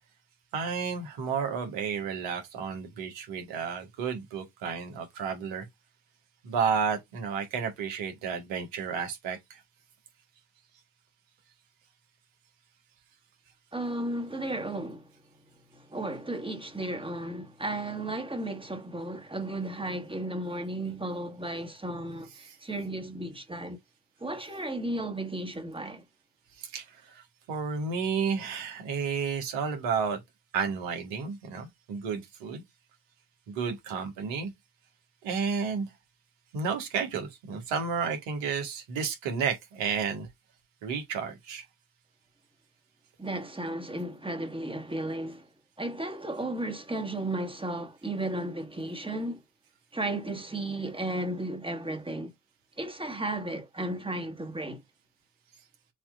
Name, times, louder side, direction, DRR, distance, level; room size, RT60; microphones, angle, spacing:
voice 1, 0.5-5.7 6.4-9.6 22.4-22.6 26.6-27.2 27.5-30.2 30.5-32.6 33.5-34.5 35.2-35.9 36.5-40.3 40.8-41.6, right 6 dB, 70° right, 1.8 m, -32 dB
voice 2, 13.7-15.1 15.7-23.8 24.2-26.0 43.2-45.5 45.8-49.4 49.9-52.3 52.8-54.8, right 1 dB, 10° right, 1.7 m, -34 dB
6.8 x 3.0 x 2.5 m
figure-of-eight pair, 40°, 47 cm